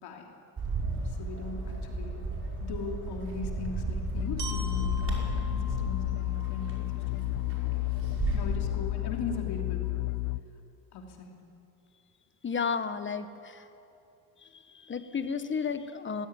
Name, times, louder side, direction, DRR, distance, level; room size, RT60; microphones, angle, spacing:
voice 1, 0.0-0.3 1.0-2.3 2.6-7.3 8.3-9.9 10.9-11.4, left 4 dB, 75° left, 1 dB, 3.0 m, -39 dB
Bird, 0.6-8.6, right 3 dB, 35° right, 5.3 m, -35 dB
sound 1, 4.1-10.4, left 25 dB, 55° left, 0.6 m, -32 dB
Glockenspiel, 4.4-8.4, right 4 dB, 85° right, 4.0 m, -46 dB
voice 2, 12.4-13.6 14.8-16.3, left 6 dB, 30° left, 10 dB, 1.3 m, -32 dB
18.5 x 16.5 x 9.8 m, 2.7 s
cardioid pair, 110°, 39 cm